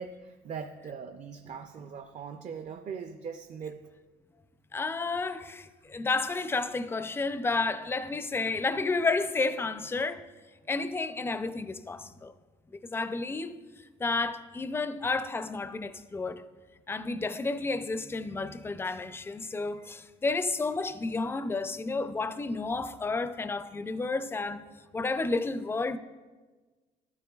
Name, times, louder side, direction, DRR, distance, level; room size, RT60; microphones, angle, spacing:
voice 1, 0.0-3.8, right 6 dB, 45° right, 0.6 m, -40 dB
voice 2, 4.7-10.3 10.7-12.3 12.8-13.6 14.0-16.4 16.9-24.6 24.9-26.0, left 3 dB, 15° left, 0.4 m, -31 dB
13.0 x 12.0 x 2.4 m
cardioid pair, 110°, 17 cm